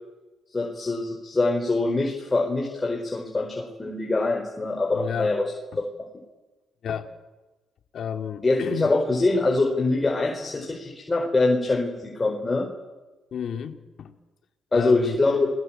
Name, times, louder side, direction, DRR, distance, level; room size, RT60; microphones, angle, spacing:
voice 1, 0.5-5.4 5.8-5.9 8.4-12.7 14.7-15.5, left 2 dB, 25° left, 0 dB, 5.0 m, -24 dB
voice 2, 4.9-5.3 5.7-5.8 6.8-7.1 7.9-8.9 13.3-14.1 14.7-15.2, left 8 dB, 60° left, 6 dB, 2.5 m, -31 dB
29.0 x 20.5 x 9.0 m, 1.2 s
cardioid pair, 90°, 0 cm